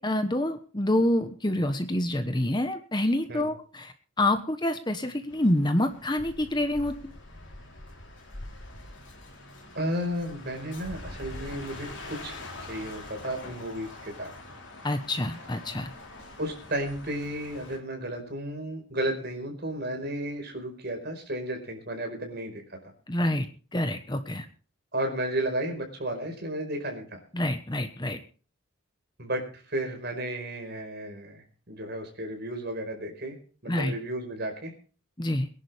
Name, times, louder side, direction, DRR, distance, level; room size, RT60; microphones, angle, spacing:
voice 1, 0.0-7.1 14.8-15.9 23.1-24.5 27.3-28.2 33.7-33.9 35.2-35.5, left 1 dB, 20° left, 8 dB, 1.1 m, -27 dB
sound 1, 5.3-17.8, left 2 dB, 55° left, 4.0 m, -44 dB
voice 2, 9.7-12.4 12.7-14.3 16.4-22.9 24.9-27.2 29.2-33.4 33.6-34.7, right 1 dB, 50° right, 3 dB, 4.8 m, -33 dB
23.5 x 11.0 x 3.5 m, 0.39 s
head